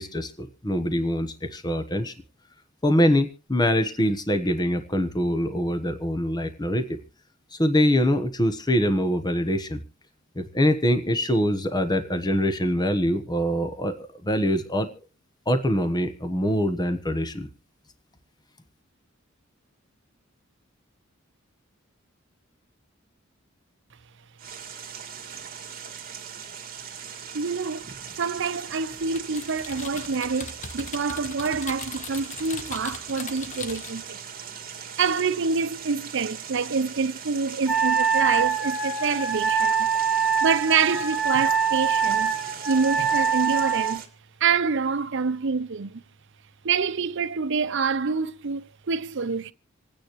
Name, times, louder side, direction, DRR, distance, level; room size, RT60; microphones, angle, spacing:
voice 1, 0.0-2.1 2.8-7.0 7.6-9.8 10.4-14.9 15.5-17.5, equal, 20° left, 1.2 m, -24 dB
sound 1, 24.4-44.1, right 7 dB, 45° right, 2.1 m, -40 dB
voice 2, 27.3-34.2 35.0-39.9 40.4-42.4 42.6-44.0 44.4-46.0 46.6-49.5, right 5 dB, 65° right, 0.7 m, -26 dB
Typing, 29.2-34.1, left 4 dB, 35° left, 1.4 m, -39 dB
Wind instrument woodwind instrument, 37.7-44.0, right 7 dB, ahead, 1.3 m, -24 dB
27.5 x 9.4 x 3.1 m
head